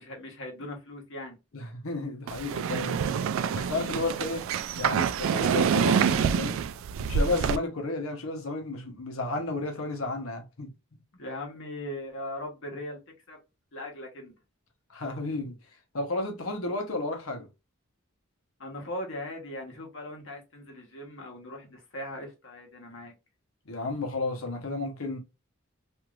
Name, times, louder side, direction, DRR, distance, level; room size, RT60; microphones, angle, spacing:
voice 1, 0.0-1.4 11.1-13.0 13.3-13.4 13.7-14.3 18.6-23.1, left 1 dB, 65° left, 1.2 m, -39 dB
voice 2, 1.5-3.0 3.5-4.5 4.8-6.6 7.1-10.7 14.9-15.6 15.9-17.5 23.7-25.2, left 2 dB, 90° left, 0.9 m, -32 dB
sound 1, 2.3-7.6, right 7 dB, 70° right, 0.3 m, -27 dB
3.0 x 2.7 x 2.4 m
head